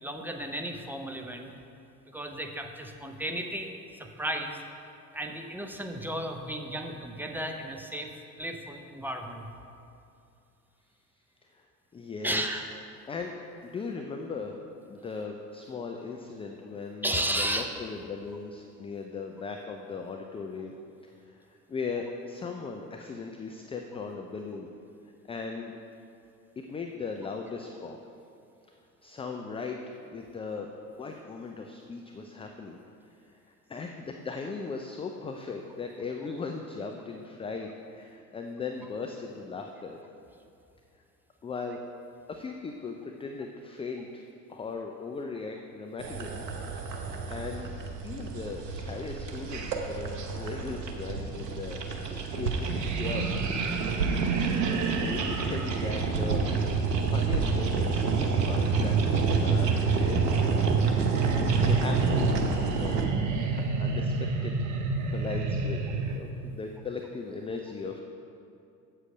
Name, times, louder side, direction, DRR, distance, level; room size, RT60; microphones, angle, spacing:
voice 1, 0.0-1.5 2.1-4.6 5.1-9.5 12.2-12.6 17.0-17.7, right 1 dB, 5° right, 4 dB, 0.8 m, -34 dB
voice 2, 11.9-12.4 13.1-13.3 13.6-14.5 14.8-20.8 21.0-24.7 25.3-25.8 26.6-28.0 29.0-30.7 31.0-32.8 33.2-40.0 41.4-41.8 42.3-44.2 44.5-46.5 47.3-47.7 48.0-53.6 54.2-54.6 55.0-60.8 61.2-62.4 62.7-63.1 63.4-65.8 66.1-68.0, left 4 dB, 10° left, 3 dB, 0.4 m, -38 dB
sound 1, 46.0-63.1, right 4 dB, 80° right, 1.0 m, -31 dB
sound 2, 52.7-66.2, right 5 dB, 40° right, 1.0 m, -28 dB
8.0 x 7.7 x 5.1 m, 2.6 s
figure-of-eight pair, 70°, 49 cm